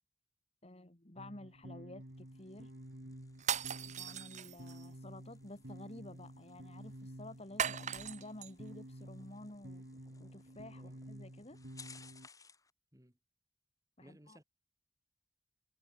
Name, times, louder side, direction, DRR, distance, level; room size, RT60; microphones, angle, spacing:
voice 1, 0.6-2.7 3.9-9.8 10.2-11.6 14.0-14.4, left 1 dB, 35° left, 2.4 m, -51 dB
sound 1, 1.2-12.3, right 1 dB, 70° right, 4.1 m, -51 dB
sound 2, 2.0-12.7, left 5 dB, 20° left, 2.1 m, -62 dB
sound 3, 3.4-4.9 7.6-8.5, right 8 dB, 40° right, 1.0 m, -38 dB
voice 2, 14.0-14.4, right 1 dB, 20° right, 3.3 m, -60 dB
head